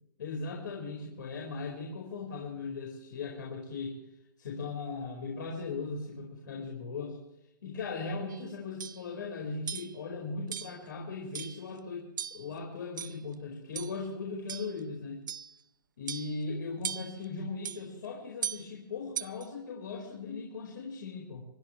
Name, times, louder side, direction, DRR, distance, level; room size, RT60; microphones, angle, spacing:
voice 1, 0.2-4.0 4.4-7.2 7.6-15.2 16.0-21.5, left 4 dB, 65° left, -1 dB, 5.0 m, -38 dB
sound 1, 8.3-8.4 8.8-9.0 9.7-10.0 10.5-10.8 11.3-11.7 12.2-12.5 13.0-13.3 13.8-14.0 14.5-14.8 15.3-15.6 16.1-16.4 16.8-17.2 17.6-17.8 18.4-18.7 19.2-19.5, right 9 dB, 60° right, 0.7 m, -38 dB
26.0 x 13.5 x 3.3 m, 0.85 s
hypercardioid pair, 180°, 11 cm